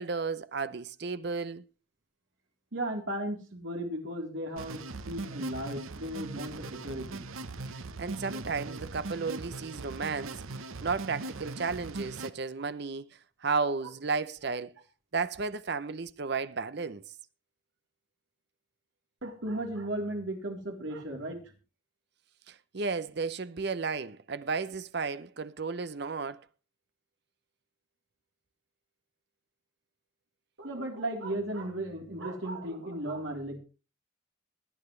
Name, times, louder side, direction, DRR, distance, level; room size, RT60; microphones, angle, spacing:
voice 1, 0.0-1.6 8.0-10.4 10.8-13.1 13.4-14.7 15.1-17.0 22.5-26.4, right 4 dB, 55° right, 0.7 m, -33 dB
voice 2, 2.7-7.3 12.6-12.7 19.2-21.5 30.6-33.6, right 1 dB, 70° right, 3.6 m, -36 dB
sound 1, 4.6-12.3, right 3 dB, 85° right, 0.9 m, -40 dB
21.5 x 9.0 x 3.2 m
head